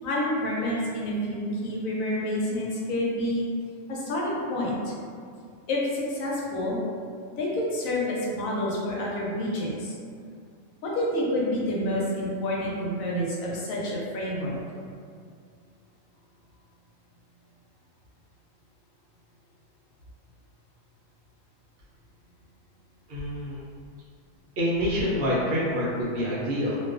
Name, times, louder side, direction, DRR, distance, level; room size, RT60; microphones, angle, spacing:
voice 1, 0.0-3.5 3.9-4.9 5.7-6.8 7.4-10.0 10.8-14.6, left 1 dB, 85° left, -4 dB, 1.0 m, -28 dB
voice 2, 23.1-23.6 24.6-26.8, equal, 60° right, -6 dB, 0.7 m, -26 dB
2.3 x 2.3 x 2.4 m, 2.2 s
omnidirectional pair, 1.4 m